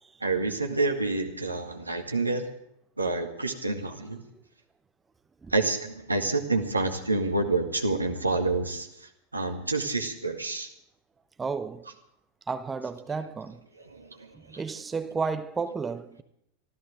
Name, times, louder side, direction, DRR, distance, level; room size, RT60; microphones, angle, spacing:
voice 1, 0.2-2.5 3.0-4.2 5.5-8.9 9.3-10.7 13.9-14.3 14.5-14.6, right 3 dB, 80° right, 1.8 m, -28 dB
voice 2, 11.4-11.8 12.5-13.6 14.3-16.2, right 5 dB, 15° right, 0.8 m, -32 dB
24.5 x 14.0 x 3.5 m
figure-of-eight pair, 90°, 0 cm